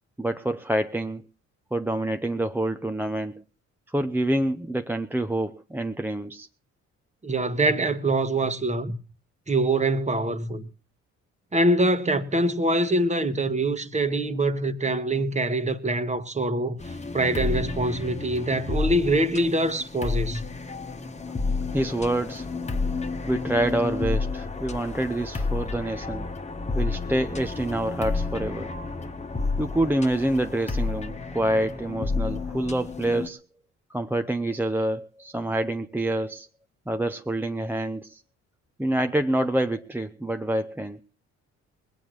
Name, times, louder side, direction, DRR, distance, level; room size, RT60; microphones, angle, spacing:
voice 1, 0.2-1.2 1.7-3.4 3.9-6.5 21.7-22.5 23.3-26.3 26.7-28.7 29.6-33.4 33.9-36.5 36.9-38.2 38.8-41.0, right 1 dB, 5° right, 0.7 m, -27 dB
voice 2, 7.2-9.0 9.5-10.7 11.5-16.8 17.1-20.4, right 1 dB, 25° right, 1.5 m, -24 dB
sound 1, 16.8-33.3, left 3 dB, 20° left, 1.4 m, -31 dB
20.5 x 8.9 x 6.3 m
cardioid pair, 90°, 30 cm